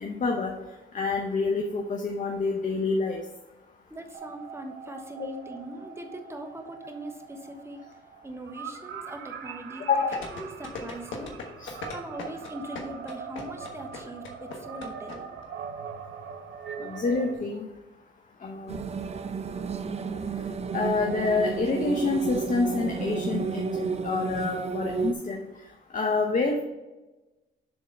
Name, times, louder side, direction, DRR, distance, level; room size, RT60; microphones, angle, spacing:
voice 1, 0.0-0.5 0.9-3.2 9.9-10.2 11.6-11.7 16.8-17.7 18.4-18.8 20.7-25.4 25.9-26.6, left 3 dB, 40° left, 2 dB, 0.9 m, -27 dB
voice 2, 3.9-7.8 8.2-9.8 10.3-11.3 11.9-15.2, right 1 dB, 15° right, 4 dB, 1.2 m, -41 dB
sound 1, 4.1-17.3, right 6 dB, 70° right, 1.0 m, -42 dB
sound 2, 10.1-15.2 15.4-15.5, left 4 dB, 75° left, 1.3 m, -38 dB
sound 3, 18.7-25.1, right 5 dB, 30° right, 0.5 m, -32 dB
7.1 x 3.7 x 5.2 m, 1.1 s
cardioid pair, 90°, 20 cm